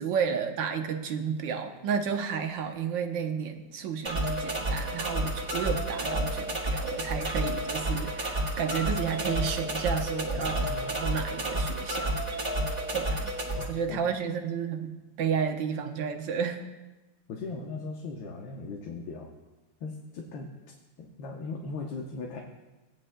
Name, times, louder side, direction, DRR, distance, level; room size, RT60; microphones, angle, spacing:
voice 1, 0.0-12.2 12.9-13.3 13.7-16.6, right 6 dB, 75° right, 5 dB, 1.6 m, -32 dB
sound 1, 4.0-13.6, right 1 dB, 20° right, 2.0 m, -31 dB
voice 2, 10.4-10.9 13.5-14.1 17.3-19.3 19.8-22.4, left 3 dB, 80° left, 0 dB, 1.7 m, -39 dB
17.5 x 9.8 x 2.2 m, 1.1 s
omnidirectional pair, 2.1 m